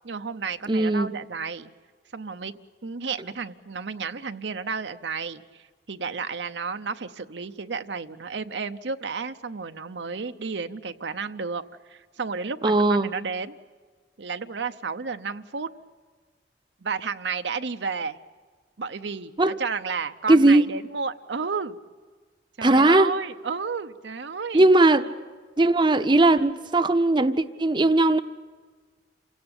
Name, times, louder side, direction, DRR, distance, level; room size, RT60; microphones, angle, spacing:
voice 1, 0.0-1.7 2.1-2.5 2.8-11.6 11.9-13.6 14.2-15.7 16.8-18.2 18.8-21.8 22.6-24.6, right 5 dB, 85° right, 0.8 m, -32 dB
voice 2, 0.7-1.1 12.6-13.1 19.4-19.6 20.3-20.7 22.6-23.1 24.5-25.1 25.6-28.2, right 2 dB, 25° right, 0.7 m, -18 dB
28.0 x 17.0 x 8.9 m
head